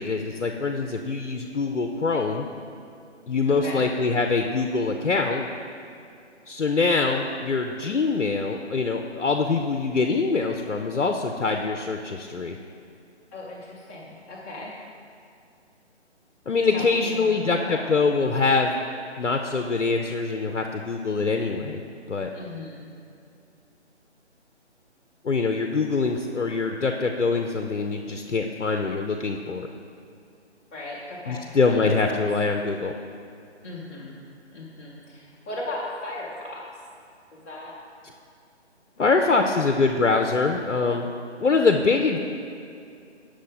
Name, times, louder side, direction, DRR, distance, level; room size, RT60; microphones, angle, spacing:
voice 1, 0.0-2.5 3.3-5.5 6.5-12.6 16.5-18.7 19.2-21.8 22.1-22.3 25.2-29.7 31.3-32.9 39.0-41.1 41.4-42.2, left 4 dB, 85° left, 4 dB, 0.6 m, -24 dB
voice 2, 3.5-3.8 13.3-14.7 16.6-17.8 22.3-22.8 30.7-32.2 33.6-34.1 34.5-36.6 37.3-37.7 39.0-39.6, left 2 dB, 10° left, -8 dB, 0.8 m, -37 dB
8.2 x 6.4 x 4.0 m, 2.5 s
figure-of-eight pair, 150°, 35 cm